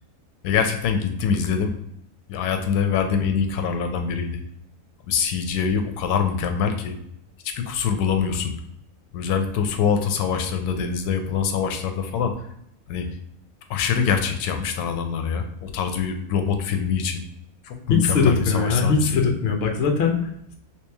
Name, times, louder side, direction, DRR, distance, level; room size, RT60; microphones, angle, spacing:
voice 1, 0.4-1.7 2.3-4.4 5.1-6.9 7.4-8.5 9.1-12.4 12.9-13.1 13.7-17.2 17.6-19.3, left 6 dB, 90° left, 6 dB, 1.1 m, -24 dB
voice 2, 17.9-20.5, left 5 dB, 55° left, 3 dB, 0.7 m, -21 dB
3.2 x 3.1 x 3.3 m, 0.74 s
omnidirectional pair, 1.6 m